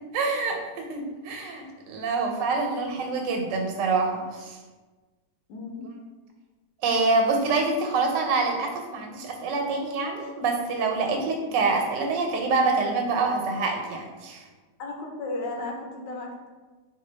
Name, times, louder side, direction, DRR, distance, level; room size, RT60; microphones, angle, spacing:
voice 1, 0.1-4.6 6.8-14.4, right 3 dB, 90° right, 2 dB, 1.3 m, -26 dB
voice 2, 5.5-5.9 14.8-16.3, left 2 dB, 85° left, 0 dB, 1.3 m, -34 dB
4.0 x 2.2 x 3.2 m, 1.3 s
omnidirectional pair, 1.9 m